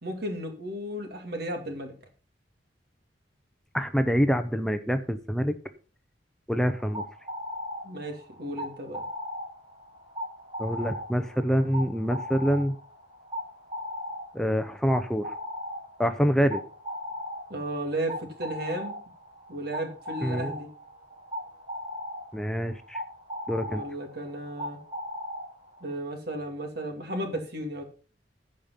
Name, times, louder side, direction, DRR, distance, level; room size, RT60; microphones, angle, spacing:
voice 1, 0.0-1.9 7.8-9.0 17.5-18.9 19.5-20.7 23.6-24.8 25.8-27.8, right 1 dB, 60° right, 5 dB, 2.5 m, -34 dB
voice 2, 3.7-5.5 6.5-7.0 10.6-12.7 14.3-15.3 16.0-16.6 20.2-20.5 22.3-23.0 23.5-23.8, equal, 5° left, 9 dB, 0.6 m, -26 dB
sound 1, 6.5-25.9, left 1 dB, 25° right, 3.3 m, -38 dB
15.0 x 5.2 x 5.7 m, 0.39 s
head